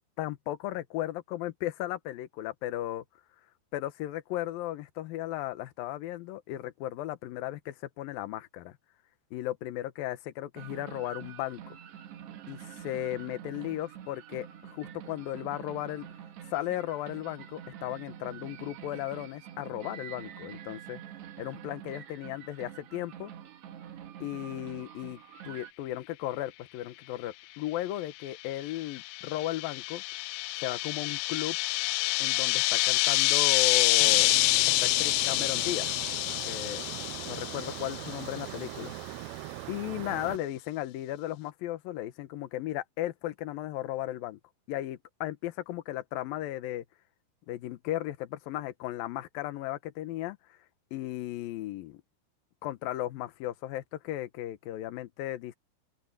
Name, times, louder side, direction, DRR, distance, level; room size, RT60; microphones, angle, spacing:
voice 1, 0.2-3.0 3.7-8.8 9.3-11.8 12.5-16.1 16.5-21.0 21.4-23.3 24.2-30.0 30.6-31.6 32.2-34.4 34.7-35.9 36.4-36.8 37.3-38.9 39.7-44.4 44.7-46.8 47.5-50.6 50.9-52.0 52.6-55.5, left 14 dB, 70° left, 2.4 m, -35 dB
sound 1, 10.6-25.7, right 10 dB, 65° right, 3.9 m, -46 dB
sound 2, 28.5-38.3, left 21 dB, 85° left, 2.9 m, -27 dB
sound 3, 34.0-40.4, right 20 dB, 85° right, 2.5 m, -41 dB
open air
omnidirectional pair, 5.4 m